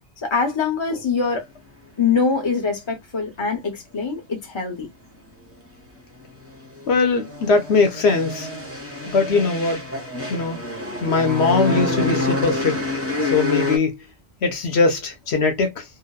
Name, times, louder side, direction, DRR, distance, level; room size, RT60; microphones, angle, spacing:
voice 1, 0.2-1.4 2.0-4.9, left 5 dB, 30° left, 0.8 m, -23 dB
sound 1, 6.2-13.8, left 2 dB, 15° right, 0.8 m, -27 dB
voice 2, 6.9-8.5 9.1-9.8 10.3-10.6 11.0-12.8 13.2-14.0 14.4-15.8, left 4 dB, 75° left, 1.0 m, -20 dB
2.9 x 2.0 x 2.2 m
omnidirectional pair, 1.1 m